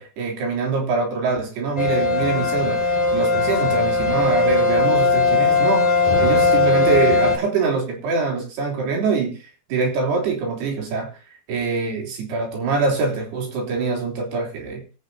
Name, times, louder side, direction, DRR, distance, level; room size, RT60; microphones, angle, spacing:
voice 1, 0.0-5.9 6.2-9.4 9.7-11.1 11.5-14.8, right 4 dB, 85° right, 0 dB, 5.4 m, -24 dB
sound 1, 1.8-7.4, left 3 dB, 15° left, 1.7 m, -18 dB
24.0 x 8.6 x 2.7 m, 0.30 s
omnidirectional pair, 4.5 m